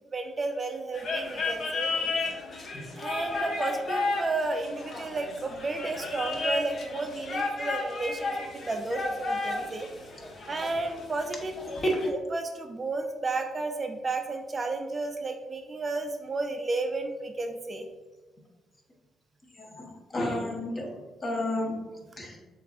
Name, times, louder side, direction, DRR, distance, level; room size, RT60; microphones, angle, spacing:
voice 1, 0.1-2.2 3.0-9.9 10.5-17.9, right 3 dB, 30° right, 5 dB, 0.4 m, -32 dB
sound 1, 0.9-12.1, left 3 dB, 50° left, 0.8 m, -33 dB
voice 2, 19.6-20.9 21.2-21.8 22.2-22.4, left 1 dB, 35° left, 0 dB, 1.0 m, -32 dB
6.5 x 2.5 x 2.5 m, 1.2 s
cardioid pair, 90°, 0 cm